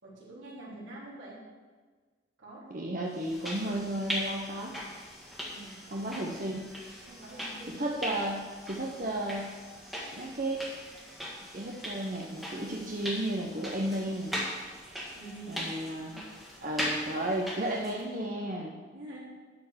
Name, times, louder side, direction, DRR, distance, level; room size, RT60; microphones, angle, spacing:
voice 1, 0.0-1.4 2.4-2.9 5.5-5.8 7.1-7.8 15.1-15.8 16.1-16.2 18.9-19.2, right 1 dB, 80° right, -6 dB, 3.5 m, -46 dB
voice 2, 2.7-4.7 5.9-6.7 7.8-9.5 10.1-10.6 11.4-14.4 15.5-16.1 16.6-18.7, right 1 dB, 45° right, -2 dB, 0.9 m, -33 dB
sound 1, 3.1-18.1, equal, ahead, 1.7 m, -40 dB
11.0 x 4.5 x 7.2 m, 1.5 s
head